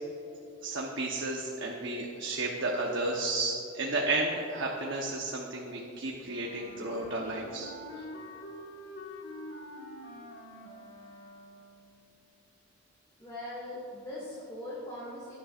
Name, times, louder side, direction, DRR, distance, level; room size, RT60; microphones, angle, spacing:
voice 1, 0.6-8.0, right 2 dB, 55° right, -1 dB, 1.0 m, -33 dB
Wind instrument woodwind instrument, 6.2-11.8, left 1 dB, 55° left, 1.7 m, -46 dB
voice 2, 13.2-15.4, left 1 dB, 15° left, -7 dB, 2.0 m, -40 dB
17.5 x 11.0 x 2.5 m, 2.8 s
head